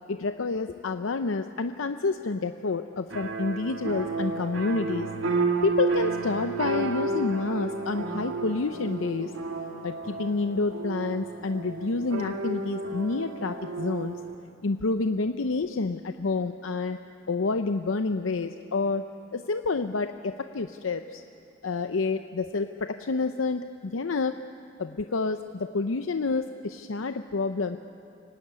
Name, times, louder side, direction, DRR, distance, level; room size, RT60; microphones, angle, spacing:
voice 1, 0.1-5.1 5.6-9.3 9.8-14.2 14.6-17.0 17.3-19.0 19.3-21.2 21.6-24.3 24.8-27.8, left 3 dB, 85° left, 8 dB, 0.7 m, -29 dB
sound 1, 3.1-14.3, right 3 dB, 80° right, 1.9 m, -31 dB
25.0 x 17.5 x 9.6 m, 2.7 s
head